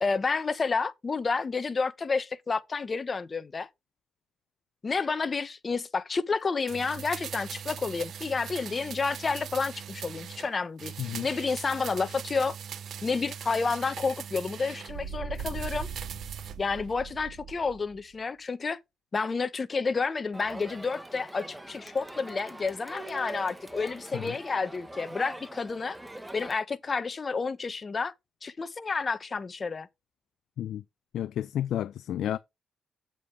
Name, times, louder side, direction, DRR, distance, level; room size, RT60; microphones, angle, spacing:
voice 1, 0.0-3.7 4.8-12.6 13.0-15.9 16.6-18.8 19.1-26.0 26.3-28.1 28.4-29.9, left 4 dB, 40° left, 1.1 m, -30 dB
sound 1, 6.7-10.5 10.8-14.9 15.3-16.6 16.9-17.0, right 8 dB, 70° right, 0.8 m, -41 dB
sound 2, 14.9-18.0, right 6 dB, 90° right, 3.5 m, -39 dB
Crowd, 20.3-26.6, right 1 dB, 10° right, 1.3 m, -43 dB
voice 2, 31.1-32.4, left 11 dB, 80° left, 0.5 m, -31 dB
8.6 x 7.8 x 3.4 m
cardioid pair, 70°, 0 cm